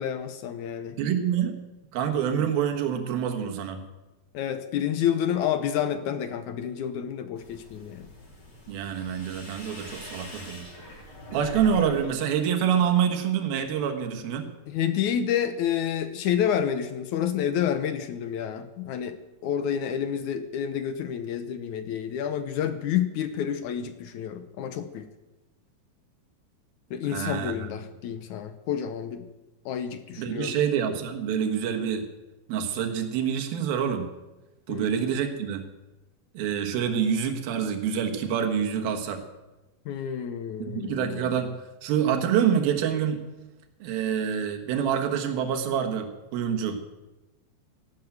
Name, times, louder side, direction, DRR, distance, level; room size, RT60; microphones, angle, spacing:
voice 1, 0.0-1.0 4.3-8.1 14.7-19.2 19.4-25.1 26.9-29.3 29.7-30.6 34.7-34.9 39.9-41.3, left 9 dB, 70° left, 10 dB, 1.9 m, -29 dB
voice 2, 1.0-1.6 1.9-3.8 8.7-10.7 11.3-14.5 27.1-27.7 30.2-32.1 32.5-34.1 34.7-35.7 36.3-39.2 40.6-41.5 41.8-43.3 43.8-46.8, right 8 dB, 80° right, 5 dB, 3.3 m, -26 dB
sound 1, 7.4-12.0 12.3-13.0, equal, 30° left, 3.9 m, -42 dB
14.5 x 12.0 x 8.0 m, 1.1 s
omnidirectional pair, 4.2 m